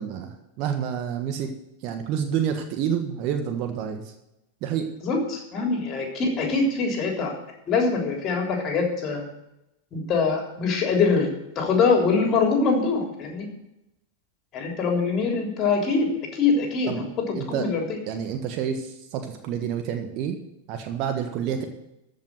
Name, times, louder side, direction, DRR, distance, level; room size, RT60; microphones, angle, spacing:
voice 1, 0.0-1.5 1.8-4.0 4.6-4.9 16.9-17.0 17.3-17.7 18.1-20.4 20.7-21.7, right 8 dB, 40° right, 6 dB, 1.4 m, -28 dB
voice 2, 5.0-7.3 7.7-9.2 9.9-11.3 11.6-13.5 14.5-18.0, left 4 dB, 30° left, 2 dB, 3.5 m, -23 dB
14.5 x 5.6 x 9.2 m, 0.87 s
figure-of-eight pair, 90°, 0 cm